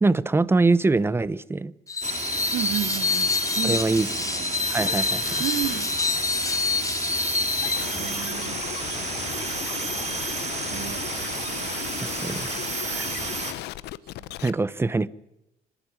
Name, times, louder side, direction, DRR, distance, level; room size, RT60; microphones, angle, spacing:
voice 1, 0.0-1.7 3.6-4.1 4.7-5.3 12.0-12.5 12.9-13.1 14.4-15.1, right 3 dB, 15° right, 0.8 m, -23 dB
Screech, 1.9-7.9, left 4 dB, 20° left, 0.8 m, -27 dB
sound 1, 2.0-13.5, right 5 dB, 40° right, 3.3 m, -32 dB
voice 2, 2.5-4.5 5.4-5.9 7.9-8.6 10.7-11.0 14.2-14.3, right 12 dB, 65° right, 1.0 m, -32 dB
sound 2, 4.8-14.5, left 15 dB, 80° left, 0.9 m, -36 dB
26.5 x 12.5 x 9.6 m
cardioid pair, 110°, 17 cm